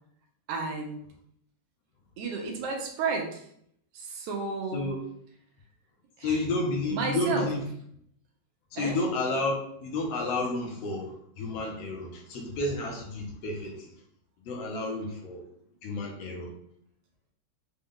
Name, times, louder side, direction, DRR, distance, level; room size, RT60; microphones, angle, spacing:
voice 1, 0.5-1.0 2.2-3.4 3.9-4.8 6.2-6.4 6.9-7.5 8.8-9.0, right 4 dB, 75° right, 1 dB, 1.4 m, -32 dB
voice 2, 6.2-7.6 8.7-13.9 14.4-15.4 15.8-16.5, left 2 dB, 70° left, 0 dB, 1.7 m, -31 dB
5.3 x 2.3 x 3.5 m, 0.68 s
omnidirectional pair, 3.4 m